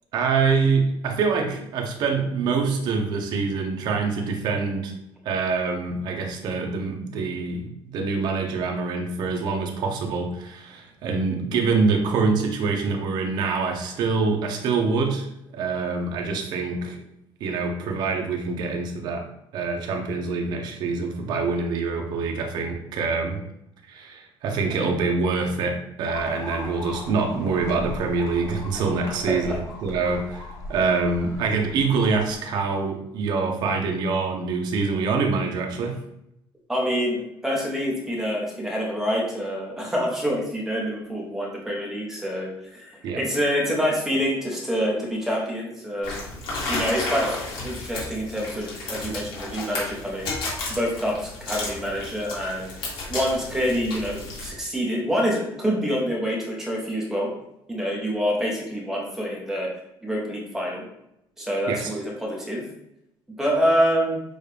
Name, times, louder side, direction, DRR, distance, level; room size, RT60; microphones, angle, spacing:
voice 1, 0.1-4.9 5.2-15.3 15.5-17.0 17.4-19.3 19.5-23.4 23.9-36.0 43.0-43.2 61.7-61.9, right 4 dB, 55° right, 3 dB, 0.7 m, -25 dB
sound 1, 26.0-32.4, left 2 dB, 35° left, 1.0 m, -38 dB
voice 2, 36.7-46.2 46.7-47.3 47.6-50.3 50.7-52.7 53.1-57.3 57.7-59.7 60.0-60.8 61.4-62.6 63.4-64.2, equal, 5° right, -3 dB, 0.9 m, -26 dB
sound 2, 46.0-54.5, left 2 dB, 75° left, 1.6 m, -33 dB
6.3 x 2.4 x 3.3 m, 0.80 s
cardioid pair, 180°, 9 cm